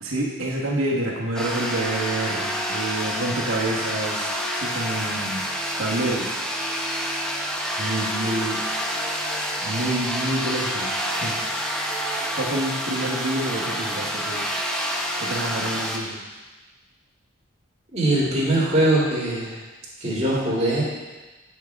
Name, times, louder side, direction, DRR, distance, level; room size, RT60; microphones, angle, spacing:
voice 1, 0.0-5.5 5.8-6.4 7.8-8.6 9.6-11.4 12.3-14.5 15.2-16.2, right 1 dB, 70° right, -4 dB, 1.3 m, -28 dB
sound 1, 1.4-16.0, equal, 5° left, 0.6 m, -28 dB
voice 2, 17.9-19.6 20.0-20.8, right 1 dB, 30° right, -7 dB, 2.3 m, -21 dB
9.2 x 5.9 x 3.5 m, 1.2 s
head